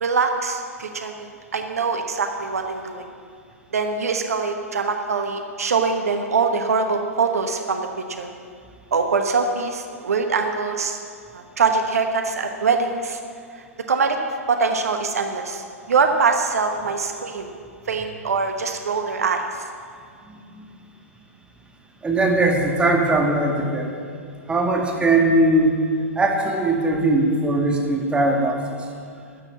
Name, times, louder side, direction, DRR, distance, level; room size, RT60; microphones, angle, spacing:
voice 1, 0.0-3.1 3.7-8.3 8.9-11.0 11.3-13.2 13.9-14.2 14.5-17.5 17.9-19.7, right 4 dB, 75° right, 5 dB, 1.1 m, -23 dB
voice 2, 20.3-20.6 22.0-23.9 24.5-25.8 26.2-28.6, right 2 dB, 10° right, 1 dB, 2.0 m, -20 dB
13.0 x 7.0 x 8.2 m, 2.2 s
hypercardioid pair, 110°, 8 cm